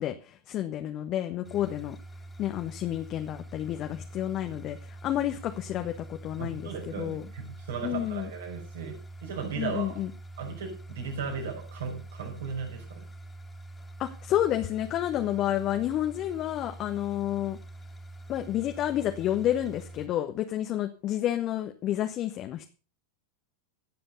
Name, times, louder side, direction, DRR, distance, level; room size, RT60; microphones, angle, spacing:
voice 1, 0.0-2.0 2.4-7.2 7.8-8.3 9.6-10.1 14.0-17.6 18.3-22.7, left 12 dB, 35° left, 6 dB, 1.3 m, -30 dB
sound 1, 1.4-20.1, right 2 dB, 10° left, 2.6 m, -45 dB
voice 2, 6.4-10.0 10.4-13.0, right 6 dB, 60° right, 1 dB, 5.6 m, -36 dB
16.5 x 7.8 x 6.7 m, 0.37 s
figure-of-eight pair, 90°, 0 cm